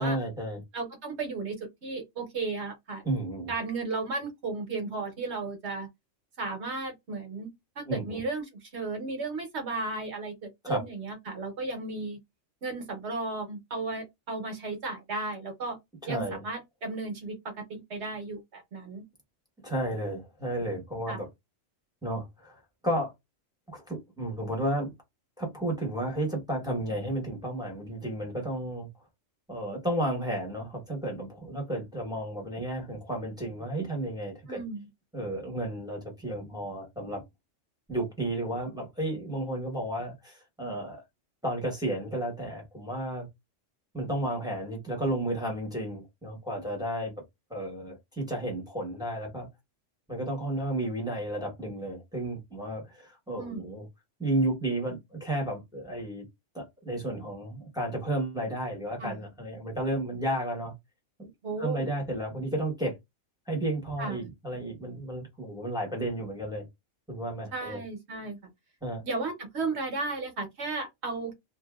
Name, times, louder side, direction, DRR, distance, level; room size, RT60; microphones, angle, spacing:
voice 1, 0.0-0.6 3.0-3.5 7.9-8.2 10.6-10.8 16.1-16.4 19.6-21.3 22.0-23.1 23.7-24.9 25.4-28.9 29.5-34.6 35.1-37.2 37.9-41.0 41.4-43.3 43.9-47.1 47.5-49.5 50.1-53.9 54.2-56.2 56.5-60.7 61.2-61.3 61.6-63.0 63.5-66.7 67.1-67.8 68.8-69.0, right 1 dB, 5° right, 1.0 m, -32 dB
voice 2, 0.7-1.6 1.8-3.0 3.5-5.9 6.4-7.5 7.8-12.2 12.6-15.8 16.1-19.0 21.1-21.2 34.5-34.9 53.4-53.7 59.0-59.2 61.4-61.8 64.0-64.3 67.5-68.4 69.0-71.3, right 3 dB, 60° right, 1.2 m, -34 dB
2.7 x 2.6 x 2.3 m
omnidirectional pair, 1.3 m